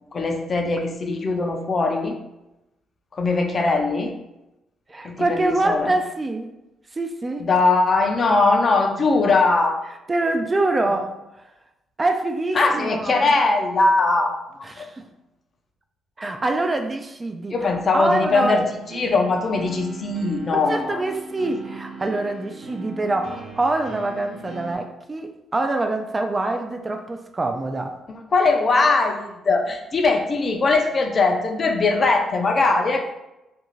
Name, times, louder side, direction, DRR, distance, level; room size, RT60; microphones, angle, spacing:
voice 1, 0.1-2.1 3.1-4.1 5.0-5.9 7.4-9.8 12.6-14.7 17.5-18.6 18.9-21.0 28.1-33.1, left 3 dB, 40° left, 3 dB, 0.4 m, -20 dB
voice 2, 4.9-6.5 6.9-7.5 10.1-11.5 12.0-13.3 14.6-15.0 16.2-17.6 17.9-18.6 20.5-28.0, right 2 dB, 25° right, 5 dB, 0.3 m, -25 dB
sound 1, 18.6-24.8, right 4 dB, 60° right, 0.7 m, -39 dB
2.5 x 2.3 x 3.0 m, 0.94 s
cardioid pair, 90°, 0 cm